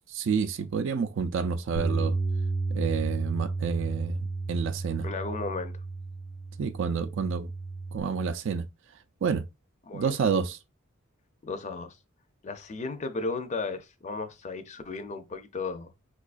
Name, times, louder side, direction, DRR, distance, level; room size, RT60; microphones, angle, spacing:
voice 1, 0.1-2.2 2.7-5.1 6.6-7.5 7.9-8.7 9.2-9.5 9.9-10.6, right 6 dB, 60° right, 0.4 m, -29 dB
Bass guitar, 1.8-8.0, right 3 dB, 85° left, 0.6 m, -32 dB
voice 2, 5.0-5.7 9.8-10.2 11.4-12.0 12.4-15.9, left 3 dB, 35° left, 0.4 m, -34 dB
4.6 x 2.3 x 2.4 m
head